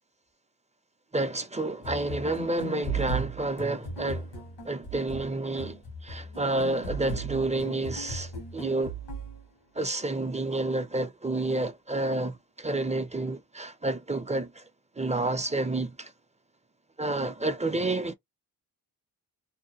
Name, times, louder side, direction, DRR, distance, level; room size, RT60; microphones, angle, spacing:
voice 1, 1.1-4.3 4.6-8.9 9.8-14.6 15.0-16.1 17.0-18.1, right 2 dB, 15° right, 0.5 m, -29 dB
sound 1, 1.8-9.4, right 3 dB, 75° left, 1.3 m, -37 dB
2.7 x 2.1 x 2.8 m
cardioid pair, 60°, 40 cm